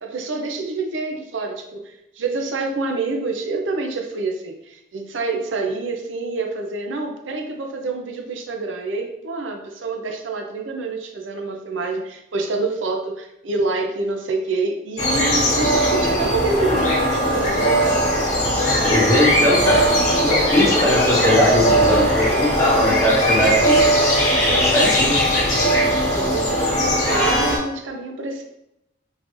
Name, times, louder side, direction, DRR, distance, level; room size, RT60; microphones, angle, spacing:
voice 1, 0.0-18.1 26.1-28.4, right 3 dB, 80° right, 3 dB, 0.5 m, -27 dB
sound 1, 15.0-27.6, equal, 40° left, 1.2 m, -19 dB
voice 2, 18.8-23.8 24.5-25.2, equal, 15° left, -4 dB, 0.9 m, -20 dB
3.7 x 2.5 x 3.1 m, 0.82 s
head